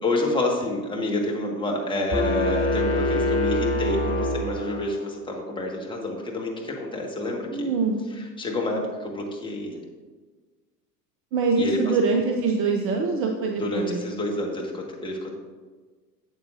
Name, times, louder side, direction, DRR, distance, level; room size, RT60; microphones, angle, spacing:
voice 1, 0.0-7.7 8.1-9.8 11.6-11.9 13.6-15.3, left 1 dB, 10° left, -1 dB, 1.5 m, -28 dB
sound 1, 2.1-5.1, left 1 dB, 30° left, 1.2 m, -25 dB
voice 2, 7.5-8.0 11.3-14.0, right 4 dB, 30° right, 3 dB, 0.7 m, -24 dB
11.5 x 7.9 x 2.6 m, 1.4 s
figure-of-eight pair, 80°, 48 cm